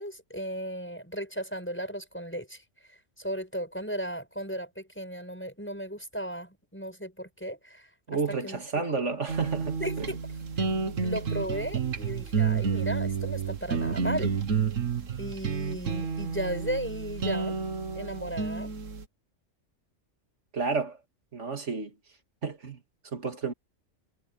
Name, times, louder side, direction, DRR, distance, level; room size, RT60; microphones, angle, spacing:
voice 1, 0.0-2.6 3.2-7.9 8.4-8.6 8.9-9.0 9.8-10.2 11.0-14.3 15.2-17.6 18.0-18.7, equal, 10° left, 5.5 m, -35 dB
voice 2, 8.1-10.1 20.5-21.0 21.3-21.9 22.4-22.8 23.1-23.5, right 4 dB, 70° right, 2.6 m, -31 dB
sound 1, 9.3-19.0, right 5 dB, 90° right, 1.8 m, -30 dB
omnidirectional pair, 1.3 m